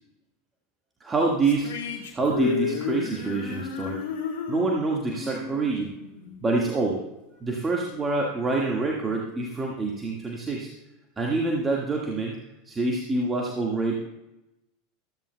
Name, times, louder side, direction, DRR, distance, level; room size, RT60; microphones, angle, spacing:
voice 1, 1.0-1.7 2.1-4.0 4.5-5.9 6.4-7.0 7.4-10.7 11.2-12.4 12.6-13.9, right 3 dB, 20° right, -1 dB, 1.7 m, -26 dB
sound 1, 1.4-6.8, left 6 dB, 60° left, 2.1 m, -33 dB
14.5 x 13.5 x 2.2 m, 0.94 s
figure-of-eight pair, 80°, 0 cm